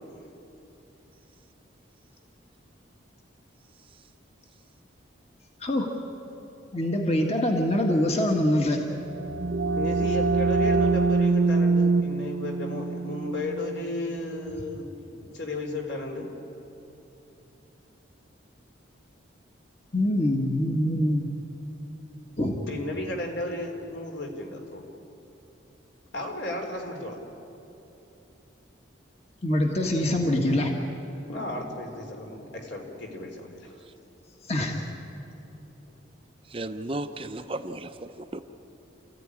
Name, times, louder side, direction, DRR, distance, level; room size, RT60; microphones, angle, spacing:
voice 1, 5.6-5.9 6.7-8.8 19.9-21.3 22.4-22.6 29.4-30.7 34.4-34.8, left 1 dB, 35° left, 2 dB, 1.7 m, -24 dB
sound 1, 8.9-14.5, right 3 dB, 70° right, 0.7 m, -25 dB
voice 2, 9.8-16.3 22.7-24.8 26.1-27.2 31.3-33.7, left 1 dB, 65° left, 2 dB, 3.8 m, -34 dB
voice 3, 36.5-38.4, right 2 dB, 30° right, 8 dB, 0.7 m, -34 dB
28.5 x 15.0 x 10.0 m, 2.9 s
head